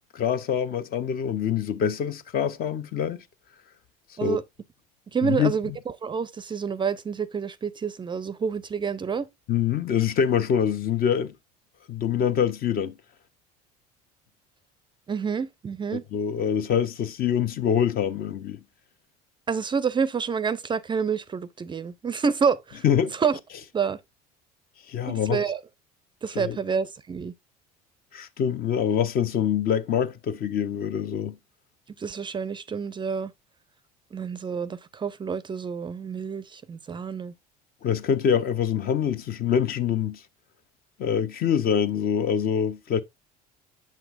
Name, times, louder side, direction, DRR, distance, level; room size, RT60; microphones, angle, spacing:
voice 1, 0.1-3.2 4.2-4.4 5.2-5.8 9.5-11.3 11.9-13.0 15.9-18.6 22.8-23.1 24.9-25.4 26.3-26.6 28.1-31.4 37.8-40.2 41.0-43.0, left 8 dB, 45° left, 0.7 m, -25 dB
voice 2, 5.1-5.7 6.0-9.3 15.1-16.0 19.5-22.8 23.2-23.4 23.7-24.0 25.1-25.6 26.2-27.3 32.0-33.3 34.1-37.3, right 6 dB, 25° right, 0.4 m, -28 dB
7.3 x 5.9 x 2.5 m
hypercardioid pair, 75°, 20 cm